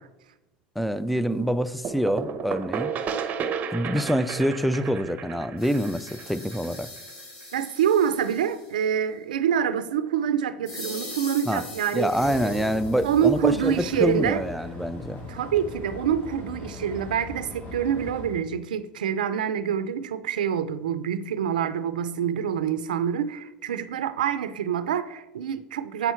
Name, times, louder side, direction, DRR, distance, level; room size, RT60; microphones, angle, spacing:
voice 1, 0.8-2.9 3.7-6.9 11.5-11.6 11.9-15.3, equal, ahead, 0.4 m, -26 dB
sound 1, 1.8-7.4, right 6 dB, 35° right, 0.8 m, -33 dB
sound 2, 5.6-8.9 10.7-14.2, left 1 dB, 70° left, 2.7 m, -42 dB
voice 2, 7.5-14.4 15.3-26.1, right 8 dB, 90° right, 0.5 m, -26 dB
sound 3, 12.1-18.3, left 2 dB, 40° left, 2.3 m, -40 dB
8.1 x 5.6 x 4.4 m
hypercardioid pair, 95°, 4 cm